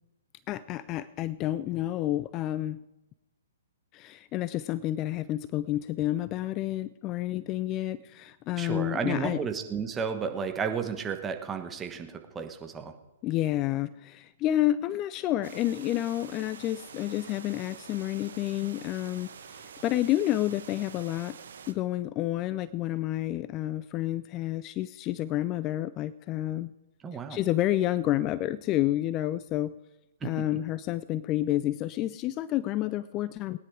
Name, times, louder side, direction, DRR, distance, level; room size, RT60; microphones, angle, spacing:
voice 1, 0.5-2.8 3.9-9.4 13.2-21.4 21.7-26.7 27.3-29.7 30.2-33.6, left 14 dB, 25° left, 17 dB, 0.4 m, -29 dB
voice 2, 8.6-12.9 27.0-27.4 30.2-30.4, right 6 dB, 15° right, 6 dB, 1.3 m, -33 dB
sound 1, 15.4-21.7, right 7 dB, 60° right, 1.2 m, -47 dB
19.5 x 10.0 x 4.9 m, 0.99 s
figure-of-eight pair, 120°, 0 cm